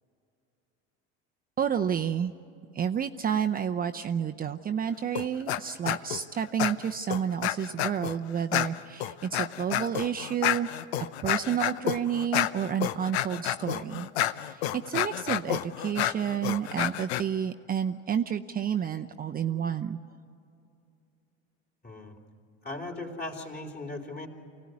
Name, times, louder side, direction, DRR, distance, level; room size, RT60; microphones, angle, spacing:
voice 1, 1.6-2.3 2.7-10.7 11.2-14.1 14.4-20.0, right 8 dB, 30° right, 6 dB, 0.6 m, -30 dB
sound 1, 5.2-5.6 5.9-6.2 6.6-8.2 8.5-17.2, left 12 dB, 85° left, 0.7 m, -30 dB
voice 2, 21.8-22.1 22.6-24.3, left 2 dB, 30° left, 2 dB, 3.7 m, -38 dB
24.5 x 17.0 x 9.6 m, 2.6 s
supercardioid pair, 90°, 31 cm